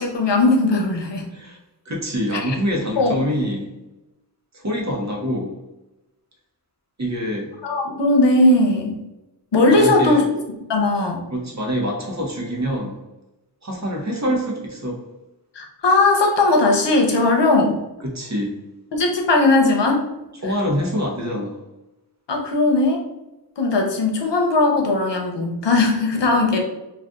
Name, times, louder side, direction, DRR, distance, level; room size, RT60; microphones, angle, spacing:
voice 1, 0.0-1.3 2.3-2.6 3.0-3.2 7.6-9.0 9.5-10.2 10.7-11.2 15.5-17.8 18.9-20.1 22.3-23.0 23.6-26.6, left 2 dB, 75° left, 2 dB, 0.7 m, -18 dB
voice 2, 1.9-3.7 4.5-5.5 7.0-7.5 9.7-10.3 11.3-13.0 13.6-15.0 18.0-18.6 20.4-21.6, equal, 40° right, -1 dB, 0.9 m, -25 dB
2.6 x 2.4 x 3.5 m, 1.0 s
wide cardioid pair, 55°, 42 cm